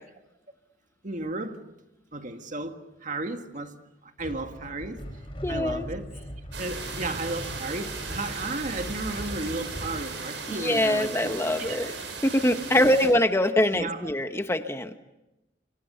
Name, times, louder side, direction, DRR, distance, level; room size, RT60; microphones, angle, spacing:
voice 1, 1.0-1.6 2.1-3.8 4.0-5.0 5.5-6.2 6.6-12.0 12.7-12.9 13.7-14.1, right 2 dB, 45° right, 1.9 m, -34 dB
sound 1, 4.2-10.0, equal, 30° left, 4.0 m, -40 dB
voice 2, 5.4-5.9 10.6-11.9 12.2-14.9, left 1 dB, 15° left, 1.0 m, -23 dB
sound 2, 6.5-13.1, right 4 dB, 70° right, 7.5 m, -37 dB
30.0 x 25.0 x 6.8 m
head